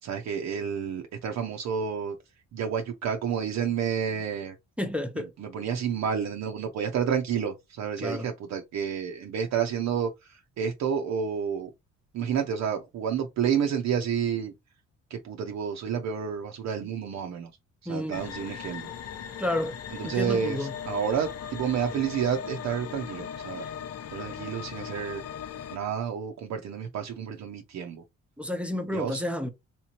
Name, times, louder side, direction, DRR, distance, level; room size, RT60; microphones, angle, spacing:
voice 1, 0.0-2.1 2.5-4.5 5.2-11.7 12.1-14.5 15.1-17.5 17.8-18.9 19.9-23.7 24.1-25.2 25.7-28.0 28.9-29.2, right 7 dB, 65° right, 0.6 m, -30 dB
voice 2, 4.8-5.3 8.0-8.3 17.9-18.2 19.4-19.7 20.0-20.7 23.6-23.7 28.4-29.5, left 1 dB, 5° right, 0.7 m, -30 dB
sound 1, 18.1-25.8, left 8 dB, 55° left, 0.6 m, -38 dB
3.4 x 2.9 x 2.9 m
cardioid pair, 90°, 30 cm